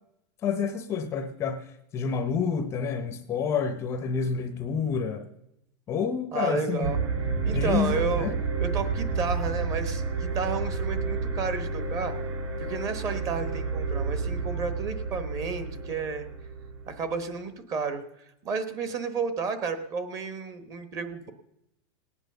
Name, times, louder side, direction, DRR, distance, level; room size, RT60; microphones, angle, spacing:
voice 1, 0.4-5.3 5.9-6.9 7.5-8.3, left 6 dB, 20° left, 9 dB, 0.7 m, -29 dB
voice 2, 6.3-7.0 7.4-8.3 8.6-12.1 12.6-16.3 16.9-18.0 18.4-21.3, right 5 dB, 25° right, 10 dB, 1.1 m, -32 dB
sound 1, 6.8-17.1, right 4 dB, 90° right, 2.3 m, -30 dB
18.5 x 9.1 x 6.7 m, 0.84 s
supercardioid pair, 170°, 14 cm